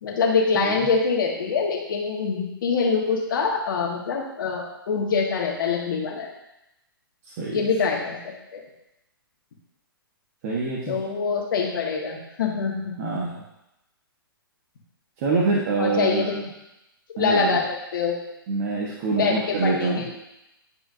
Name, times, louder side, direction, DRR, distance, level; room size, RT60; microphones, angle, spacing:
voice 1, 0.0-6.3 7.5-8.2 8.5-8.6 10.9-13.1 15.8-16.3 17.2-18.1 19.1-20.1, left 5 dB, 60° left, -1 dB, 1.8 m, -24 dB
voice 2, 0.5-0.9 7.2-7.6 10.4-11.0 13.0-13.4 15.2-16.5 17.2-17.6 18.5-20.1, right 3 dB, 40° right, -4 dB, 1.1 m, -26 dB
10.0 x 4.9 x 2.6 m, 0.90 s
hypercardioid pair, 130°, 12 cm